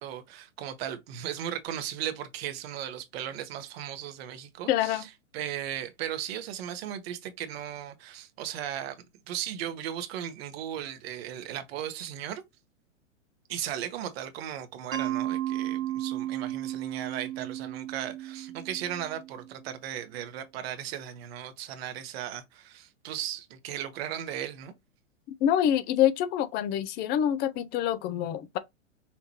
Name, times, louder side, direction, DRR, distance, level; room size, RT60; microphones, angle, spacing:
voice 1, 0.0-9.0 9.3-12.4 13.5-24.7, right 10 dB, 50° right, 1.3 m, -36 dB
voice 2, 4.7-5.0 25.4-28.6, left 10 dB, 25° left, 0.5 m, -26 dB
Mallet percussion, 14.9-19.7, right 13 dB, 80° right, 1.5 m, -34 dB
5.8 x 2.6 x 3.0 m
hypercardioid pair, 115°, 39 cm